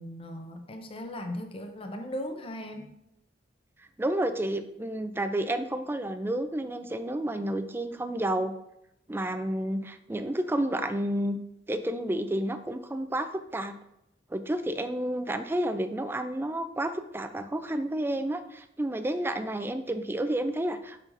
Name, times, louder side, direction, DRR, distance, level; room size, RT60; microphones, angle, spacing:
voice 1, 0.0-2.9, left 1 dB, 30° left, 5 dB, 0.6 m, -38 dB
voice 2, 4.0-8.5 9.1-11.4 11.7-13.3 13.5-13.8 14.3-21.0, right 1 dB, 10° right, 9 dB, 0.4 m, -30 dB
7.3 x 5.5 x 2.6 m, 0.81 s
head